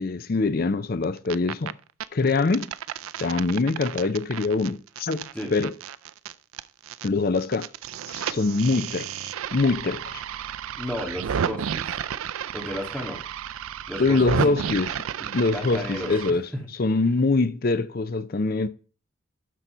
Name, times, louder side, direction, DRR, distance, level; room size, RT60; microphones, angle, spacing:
voice 1, 0.0-1.7 2.1-2.7 3.2-5.7 7.0-7.7 8.1-10.2 14.0-14.9 15.3-16.4 16.8-18.7, left 3 dB, 45° left, 0.5 m, -24 dB
sound 1, 1.0-1.7 2.0-7.1 7.3-16.3, right 8 dB, 90° right, 0.4 m, -32 dB
voice 2, 10.8-12.0 12.5-13.2 13.9-14.5 15.2-16.7, left 1 dB, 5° left, 1.8 m, -34 dB
12.0 x 4.2 x 5.5 m
head